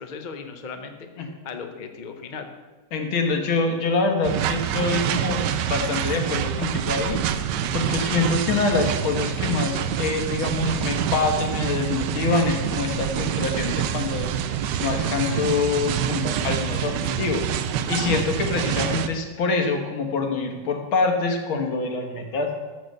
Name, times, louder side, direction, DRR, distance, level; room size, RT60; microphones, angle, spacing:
voice 1, 0.0-2.5, left 5 dB, 50° left, 5 dB, 0.5 m, -37 dB
voice 2, 2.9-7.2 7.7-14.3 14.8-22.5, left 4 dB, 80° left, 4 dB, 2.1 m, -25 dB
sound 1, 4.2-19.1, right 9 dB, 70° right, 1.1 m, -26 dB
14.0 x 4.7 x 6.5 m, 1.3 s
omnidirectional pair, 2.2 m